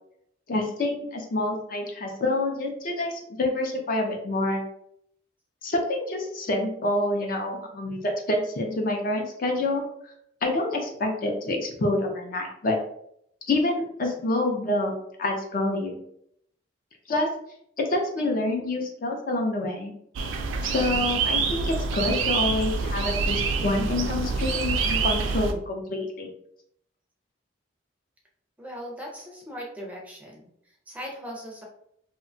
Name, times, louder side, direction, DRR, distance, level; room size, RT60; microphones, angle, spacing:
voice 1, 0.5-4.6 5.6-9.8 10.4-12.8 13.5-16.0 17.1-17.3 17.8-19.9 20.6-26.3, left 2 dB, 45° left, 2 dB, 0.5 m, -27 dB
sound 1, 20.2-25.5, right 4 dB, 80° right, 0.3 m, -26 dB
voice 2, 28.6-31.6, equal, 10° right, -1 dB, 0.4 m, -39 dB
2.8 x 2.2 x 2.5 m, 0.71 s
head